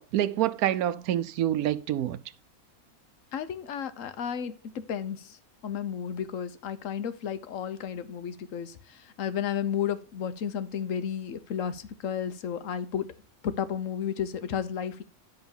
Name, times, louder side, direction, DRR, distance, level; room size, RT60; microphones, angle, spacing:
voice 1, 0.0-2.2, right 12 dB, 80° right, 1.1 m, -27 dB
voice 2, 3.3-5.4 5.6-13.1 13.4-15.0, left 8 dB, 65° left, 1.2 m, -33 dB
10.5 x 4.0 x 7.1 m
omnidirectional pair, 1.6 m